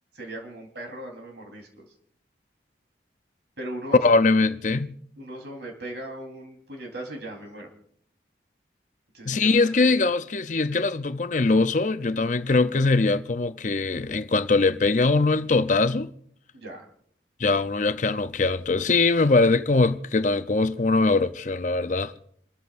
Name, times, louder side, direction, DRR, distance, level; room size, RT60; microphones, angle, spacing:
voice 1, 0.1-1.9 3.6-4.2 5.2-7.7 9.1-10.0 16.5-16.9, right 1 dB, 75° right, 3.8 m, -38 dB
voice 2, 3.9-4.9 9.3-16.1 17.4-22.1, left 3 dB, 45° left, 0.6 m, -22 dB
28.5 x 13.5 x 2.6 m
head